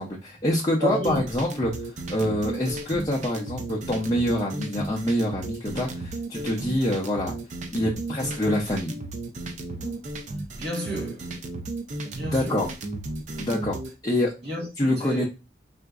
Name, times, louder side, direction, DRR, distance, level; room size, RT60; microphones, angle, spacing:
voice 1, 0.0-7.3 7.7-9.0 12.2-12.7 13.4-13.8 14.0-14.3 14.8-15.2, left 1 dB, 20° left, 0.5 m, -26 dB
voice 2, 0.8-1.3 6.4-6.7 9.8-10.0 10.6-11.4 12.0-12.7 14.4-15.3, right 1 dB, 60° right, 1.1 m, -31 dB
sound 1, 1.0-13.9, right 2 dB, 40° right, 0.4 m, -35 dB
3.8 x 2.5 x 2.3 m
head